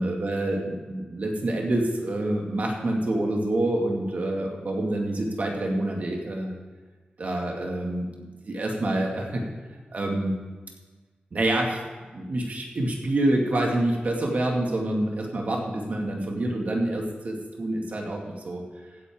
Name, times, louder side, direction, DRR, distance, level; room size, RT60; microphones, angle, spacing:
voice 1, 0.0-6.5 7.2-8.1 8.4-9.4 9.9-10.3 11.3-11.8 12.1-18.6, right 1 dB, 55° right, 0 dB, 2.1 m, -27 dB
15.5 x 9.7 x 3.7 m, 1.3 s
wide cardioid pair, 130°, 3 cm